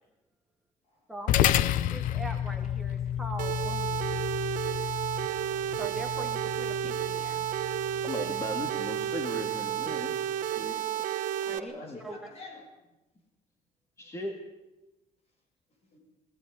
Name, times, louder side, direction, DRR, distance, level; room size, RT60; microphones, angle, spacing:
voice 1, 1.1-4.2 5.8-7.5 11.4-11.7 12.0-12.2, right 2 dB, ahead, 5 dB, 1.7 m, -42 dB
sound 1, 1.3-9.9, left 11 dB, 85° left, 0.8 m, -32 dB
sound 2, 3.4-11.6, right 11 dB, 80° right, 1.2 m, -32 dB
voice 2, 5.2-5.8 11.4-12.6 15.9-16.0, left 3 dB, 50° left, 2 dB, 7.9 m, -48 dB
voice 3, 8.0-10.1 10.6-10.9 11.5-12.0 14.0-14.4, left 1 dB, 20° left, 4 dB, 2.1 m, -38 dB
21.0 x 16.5 x 9.7 m, 0.99 s
cardioid pair, 175°, 13 cm